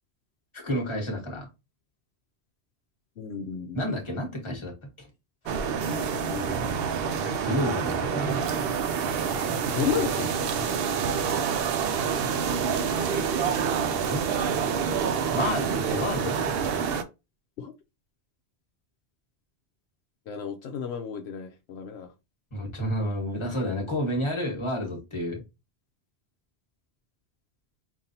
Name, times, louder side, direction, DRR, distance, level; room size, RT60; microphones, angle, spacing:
voice 1, 0.5-1.5 3.7-4.7 5.0-5.1 7.2-8.7 14.1-14.5 15.3-16.5 22.5-25.4, equal, 25° left, 1.3 m, -30 dB
voice 2, 3.2-3.8 5.8-6.6 9.7-11.0 13.4-13.5 13.9-14.0 17.6-17.7 20.3-22.1, left 7 dB, 80° left, 0.9 m, -33 dB
sound 1, 5.5-17.0, right 6 dB, 70° right, 0.7 m, -27 dB
5.3 x 2.6 x 2.7 m
omnidirectional pair, 1.1 m